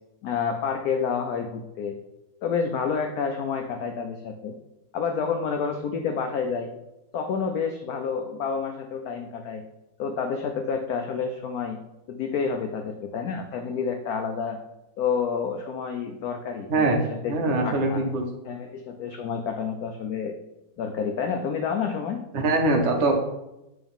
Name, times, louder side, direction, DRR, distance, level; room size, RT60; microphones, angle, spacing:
voice 1, 0.2-2.0 2.4-4.5 4.9-6.7 7.1-9.6 10.0-11.8 12.1-14.6 15.0-18.0 18.4-20.3 20.8-22.2, left 6 dB, 75° left, 4 dB, 0.8 m, -29 dB
voice 2, 16.7-17.0 17.3-18.3 22.3-23.1, right 2 dB, 70° right, 3 dB, 0.6 m, -22 dB
8.9 x 3.4 x 3.6 m, 0.95 s
omnidirectional pair, 2.1 m